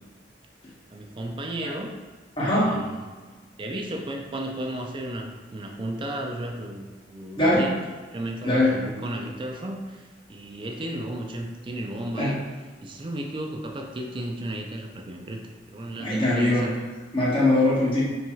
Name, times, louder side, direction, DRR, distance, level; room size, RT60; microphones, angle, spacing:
voice 1, 0.9-1.9 2.4-3.0 3.3-7.8 8.1-12.4 12.8-16.8, right 1 dB, 30° right, 2 dB, 0.4 m, -34 dB
voice 2, 2.4-2.8 7.4-7.7 8.4-9.0 12.2-12.5 16.0-16.7 17.1-18.0, left 1 dB, 30° left, -6 dB, 0.9 m, -22 dB
4.5 x 2.6 x 2.3 m, 1.4 s
head